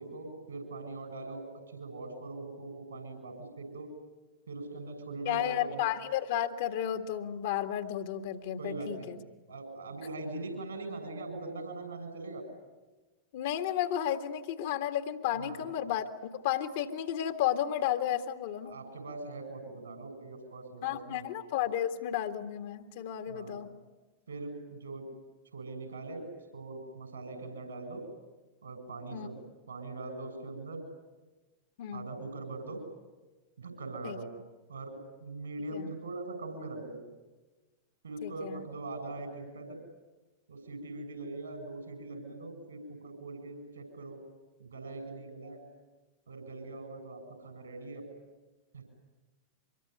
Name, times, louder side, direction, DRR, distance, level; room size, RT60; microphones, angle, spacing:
voice 1, 0.0-3.9 4.5-5.8 8.6-9.1 9.5-12.4 15.4-15.7 18.6-21.3 23.3-23.6 24.3-25.1 25.5-26.3 26.5-28.0 28.6-29.4 29.7-30.8 31.9-32.8 33.6-34.3 34.7-34.9 35.2-37.0 38.0-39.8 40.5-44.2 44.6-45.6 46.3-48.0 48.7-48.8, right 2 dB, 75° right, 6 dB, 7.3 m, -41 dB
voice 2, 5.3-9.2 13.3-16.1 16.3-18.7 20.8-23.7 29.1-29.3 31.8-32.1 34.0-34.2 35.7-35.9 38.2-38.7, left 11 dB, 55° left, 8 dB, 1.9 m, -33 dB
25.5 x 22.5 x 9.6 m, 1.2 s
figure-of-eight pair, 90°, 0 cm